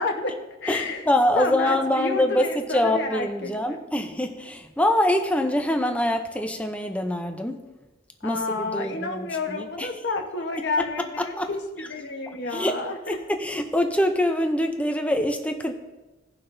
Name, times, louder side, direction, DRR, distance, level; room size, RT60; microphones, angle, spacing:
voice 1, 0.0-1.0 1.4-3.8 8.2-13.2, left 3 dB, 65° left, 3 dB, 1.1 m, -30 dB
voice 2, 0.7-7.6 8.2-9.9 11.4-11.5 12.5-15.7, left 1 dB, 5° left, 5 dB, 0.5 m, -24 dB
17.0 x 5.7 x 2.7 m, 1.1 s
head